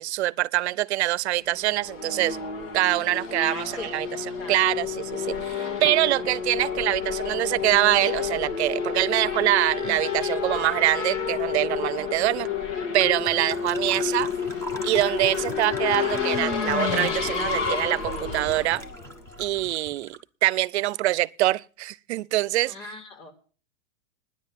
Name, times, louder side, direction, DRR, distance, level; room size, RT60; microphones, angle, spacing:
voice 1, 0.0-2.4 2.7-4.1 4.5-12.5 12.9-14.3 14.8-18.8 19.4-20.2 20.4-22.7, right 16 dB, 60° right, 0.6 m, -24 dB
Race car auto racing / Accelerating revving vroom, 1.5-19.7, left 6 dB, 70° left, 2.4 m, -30 dB
voice 2, 3.4-3.9 4.4-4.6 22.6-23.3, left 3 dB, 85° left, 4.3 m, -39 dB
sound 1, 7.8-20.2, equal, 5° left, 0.8 m, -43 dB
10.0 x 8.8 x 9.2 m
supercardioid pair, 170°, 38 cm